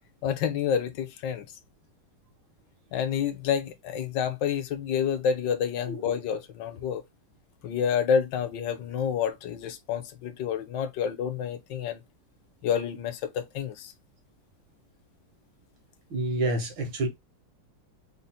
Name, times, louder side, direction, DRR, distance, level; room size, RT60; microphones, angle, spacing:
voice 1, 0.2-1.5 2.9-7.0 7.6-12.0 12.6-13.9, left 7 dB, 75° left, 1.3 m, -28 dB
voice 2, 16.1-17.1, right 2 dB, 90° right, 1.9 m, -28 dB
4.0 x 2.0 x 4.1 m
omnidirectional pair, 2.0 m